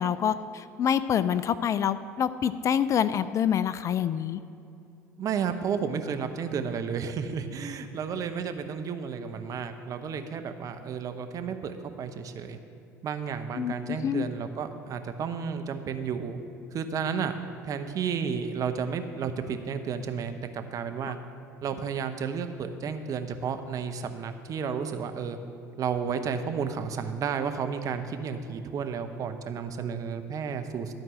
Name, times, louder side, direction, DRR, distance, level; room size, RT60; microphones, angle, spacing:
voice 1, 0.0-4.4 13.6-14.3, left 8 dB, 40° left, 15 dB, 0.4 m, -26 dB
voice 2, 5.2-12.6 13.0-16.4 16.7-21.2 21.6-25.4 25.8-30.9, right 6 dB, 45° right, 8 dB, 0.9 m, -32 dB
13.0 x 4.6 x 7.5 m, 2.6 s
figure-of-eight pair, 65°, 8 cm